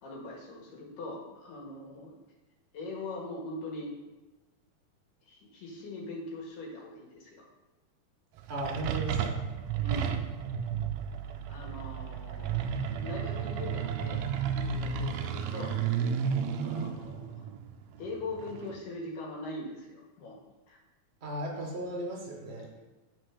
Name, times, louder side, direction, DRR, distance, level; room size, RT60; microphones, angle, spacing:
voice 1, 0.0-2.1 2.7-3.9 5.3-7.4 9.8-10.2 11.5-14.3 14.5-15.8 16.6-17.4 18.0-20.4 20.7-20.8 22.7-22.8, left 2 dB, 80° left, -3 dB, 3.2 m, -41 dB
sound 1, 8.4-18.7, right 7 dB, 85° right, 1.5 m, -33 dB
voice 2, 8.5-9.4 21.2-22.7, right 1 dB, 50° right, -2 dB, 0.7 m, -36 dB
8.7 x 4.6 x 4.9 m, 1.1 s
omnidirectional pair, 3.7 m